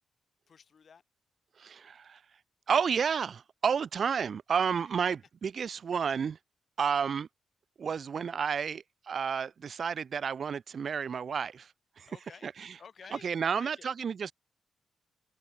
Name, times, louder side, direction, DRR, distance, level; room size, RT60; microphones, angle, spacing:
voice 1, 0.5-1.0 12.1-12.5 12.8-13.9, left 6 dB, 55° left, 5.5 m, -52 dB
voice 2, 1.6-2.2 2.7-6.4 6.8-7.3 7.8-11.7 12.0-12.1 12.4-12.7 13.1-14.3, right 6 dB, 60° right, 1.4 m, -31 dB
hypercardioid pair, 45°, 0 cm